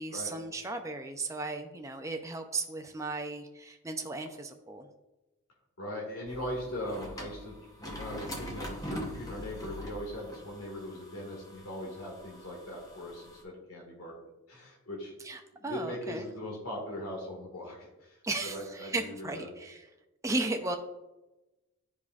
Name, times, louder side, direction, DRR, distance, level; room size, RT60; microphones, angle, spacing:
voice 1, 0.0-4.9 15.2-16.3 18.2-19.9 20.2-20.8, right 2 dB, 15° right, 5 dB, 0.5 m, -35 dB
voice 2, 5.8-14.1 14.5-15.1 15.6-19.5, equal, 85° left, -2 dB, 1.8 m, -40 dB
sound 1, 6.3-13.4, left 1 dB, 15° left, 0.8 m, -43 dB
10.5 x 4.9 x 2.4 m, 1.0 s
head